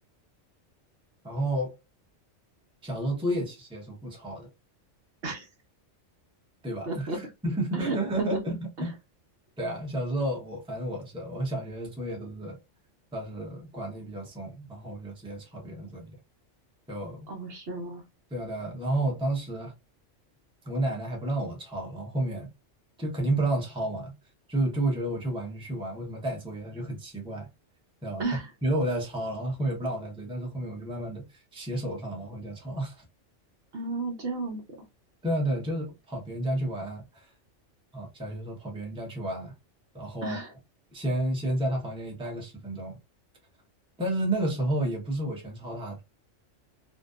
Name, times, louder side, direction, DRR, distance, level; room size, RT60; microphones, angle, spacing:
voice 1, 1.2-1.7 2.8-4.5 6.6-8.5 8.8-8.9 9.6-12.6 13.1-16.2 16.9-17.3 18.3-19.7 20.6-22.5 23.0-24.1 24.5-27.5 28.0-28.2 28.6-33.0 35.2-37.3 37.9-39.5 39.9-40.4 40.9-43.0 44.0-46.0, right 1 dB, 5° right, 0.6 m, -31 dB
voice 2, 6.9-7.2 7.7-8.9 17.3-18.0 28.2-28.5 33.7-34.6 40.2-40.5, right 2 dB, 60° right, 0.8 m, -33 dB
2.5 x 2.2 x 2.3 m
omnidirectional pair, 1.2 m